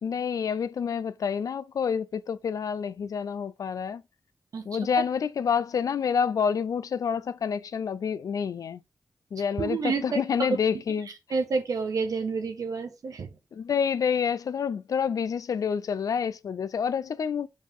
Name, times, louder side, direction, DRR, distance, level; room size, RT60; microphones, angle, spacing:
voice 1, 0.0-4.0 4.6-8.8 9.3-11.1 13.5-17.5, left 7 dB, 80° left, 0.5 m, -28 dB
voice 2, 9.6-10.2 11.3-13.3, right 4 dB, 80° right, 1.3 m, -29 dB
5.2 x 5.2 x 3.7 m
cardioid pair, 40°, 6 cm